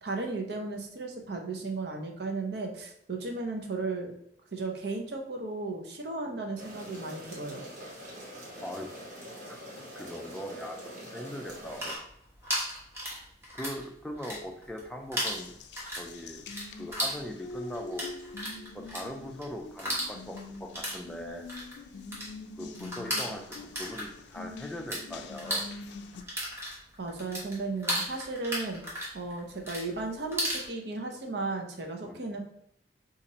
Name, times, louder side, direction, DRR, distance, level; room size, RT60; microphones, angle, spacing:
voice 1, 0.0-4.1 4.5-7.6 27.0-28.8 29.1-32.4, right 3 dB, 70° right, 2 dB, 0.6 m, -35 dB
sound 1, 6.6-12.0, equal, 45° right, 1.0 m, -44 dB
voice 2, 10.0-12.0 13.5-15.6 15.9-16.5 16.7-18.1 18.7-21.5 22.6-25.7 32.0-32.2, equal, 5° left, 2 dB, 0.4 m, -40 dB
sound 2, 11.6-13.8 14.1-14.8 15.1-25.0 25.3-30.7, equal, 15° right, 1.0 m, -35 dB
Water tap faucet, 15.3-26.2, left 3 dB, 80° left, 0.3 m, -45 dB
2.7 x 2.5 x 4.1 m, 0.75 s
head